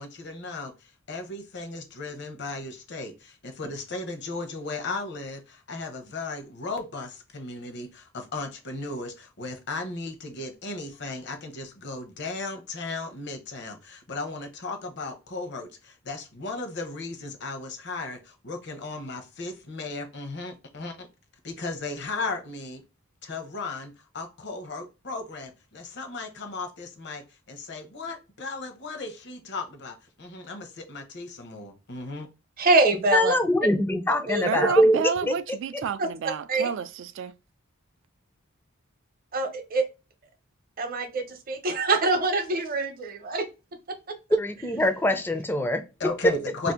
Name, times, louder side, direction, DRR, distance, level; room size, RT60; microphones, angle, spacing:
voice 1, 0.0-21.1 21.4-22.8 23.2-32.3 46.0-46.7, left 3 dB, 55° left, 0.8 m, -36 dB
voice 2, 32.6-33.3 34.3-34.4 36.0-36.1 36.5-36.7 39.3-39.8 40.8-43.4, right 3 dB, 45° right, 0.7 m, -24 dB
voice 3, 33.1-35.3 44.3-45.8, left 1 dB, 10° left, 0.4 m, -23 dB
voice 4, 34.4-37.3, right 6 dB, 60° right, 0.3 m, -30 dB
2.7 x 2.4 x 3.5 m
head